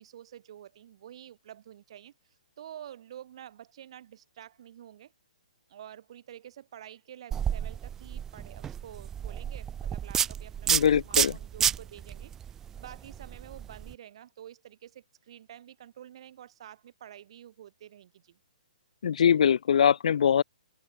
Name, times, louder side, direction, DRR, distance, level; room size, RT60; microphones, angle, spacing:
voice 1, 0.0-5.1 5.7-18.4, right 11 dB, 45° right, 2.3 m, -49 dB
sound 1, 7.3-13.9, right 9 dB, 10° right, 0.4 m, -31 dB
voice 2, 10.7-11.4 19.0-20.4, left 8 dB, 60° left, 0.4 m, -22 dB
hypercardioid pair, 165°, 4 cm